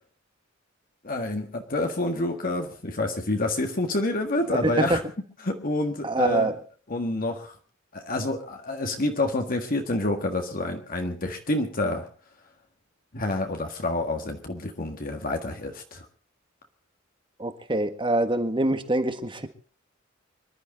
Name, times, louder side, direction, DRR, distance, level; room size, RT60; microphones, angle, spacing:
voice 1, 1.0-5.0 5.4-6.5 6.9-7.5 7.9-12.1 13.1-16.0, left 2 dB, 45° left, 4 dB, 1.7 m, -28 dB
voice 2, 6.0-6.5 17.4-19.5, right 2 dB, 25° right, 9 dB, 1.6 m, -25 dB
25.0 x 11.5 x 4.0 m, 0.38 s
head